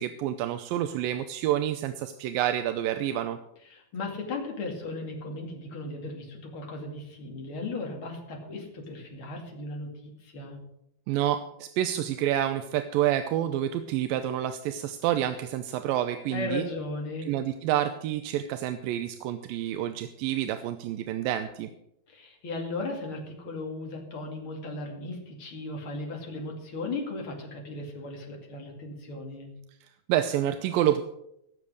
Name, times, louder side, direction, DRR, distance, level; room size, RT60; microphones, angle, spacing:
voice 1, 0.0-3.4 11.1-16.7 17.3-21.7 30.1-31.0, right 12 dB, 80° right, 9 dB, 2.3 m, -28 dB
voice 2, 3.7-10.6 16.3-17.3 22.1-29.5, left 2 dB, 40° left, 0 dB, 2.9 m, -36 dB
17.0 x 7.0 x 6.3 m, 0.80 s
omnidirectional pair, 4.2 m